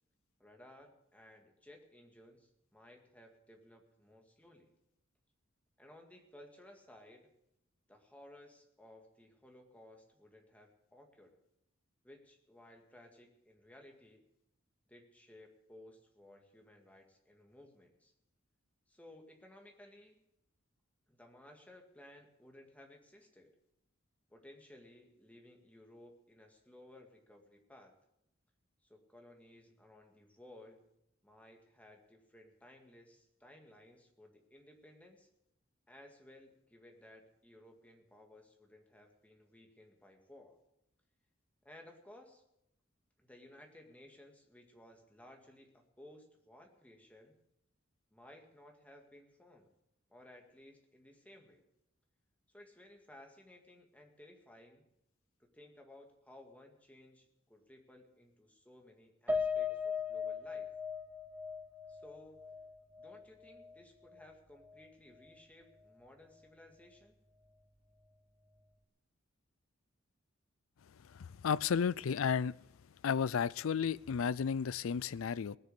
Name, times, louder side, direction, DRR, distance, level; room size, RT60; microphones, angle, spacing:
voice 1, 0.4-4.7 5.8-7.3 7.9-11.4 12.0-14.2 14.9-18.1 18.9-20.2 21.1-23.6 24.3-27.9 28.8-30.8 31.2-35.3 35.9-40.6 41.6-42.4 43.2-47.3 48.1-49.7 50.1-51.6 52.5-54.8 55.4-60.7 61.9-62.4 63.0-67.2, left 1 dB, 5° left, 2 dB, 2.0 m, -58 dB
Piano, 59.3-63.8 64.1-64.3 64.7-64.8, left 5 dB, 10° right, 0.8 m, -38 dB
voice 2, 71.2-72.5 73.0-75.6, left 6 dB, 80° left, 21 dB, 0.4 m, -33 dB
19.0 x 6.8 x 8.2 m, 0.82 s
head